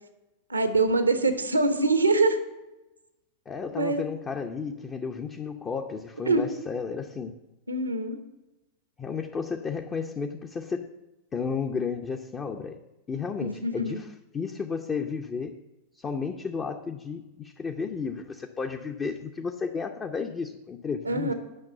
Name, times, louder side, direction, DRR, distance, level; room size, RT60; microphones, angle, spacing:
voice 1, 0.5-2.4 3.7-4.0 6.3-6.5 7.7-8.2 13.4-14.0 21.0-21.3, right 3 dB, 80° right, 10 dB, 1.0 m, -24 dB
voice 2, 3.5-7.3 9.0-10.9 11.3-12.8 13.1-14.1 14.3-15.6 15.9-21.3, left 5 dB, 20° left, 3 dB, 0.7 m, -33 dB
8.7 x 6.0 x 7.8 m, 0.99 s
figure-of-eight pair, 90°, 0 cm